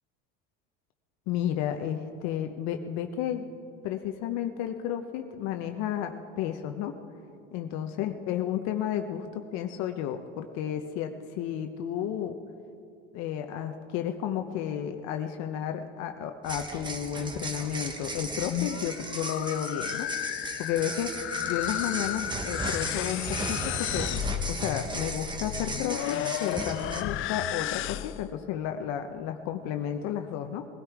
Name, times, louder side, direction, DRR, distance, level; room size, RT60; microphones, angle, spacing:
voice 1, 1.3-3.5 3.8-6.9 7.5-12.4 13.1-20.1 20.6-21.1 21.5-24.1 24.5-30.7, left 10 dB, 65° left, 6 dB, 0.9 m, -32 dB
sound 1, 16.4-27.0, right 2 dB, 15° right, 1.3 m, -36 dB
sound 2, 18.3-28.3, left 14 dB, 45° left, 0.5 m, -33 dB
21.0 x 12.5 x 4.7 m, 2.6 s
supercardioid pair, 115°, 29 cm